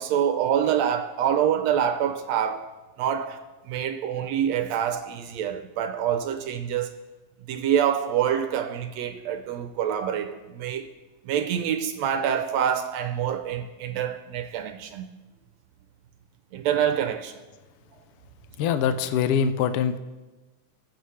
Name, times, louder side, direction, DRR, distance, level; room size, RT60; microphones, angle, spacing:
voice 1, 0.0-2.7 3.0-3.4 3.6-6.9 7.5-10.9 11.2-15.1 16.5-17.3 18.6-18.7, right 9 dB, 80° right, 1.6 m, -26 dB
voice 2, 18.6-20.0, left 7 dB, 90° left, 1.2 m, -23 dB
20.5 x 7.9 x 3.2 m
omnidirectional pair, 3.4 m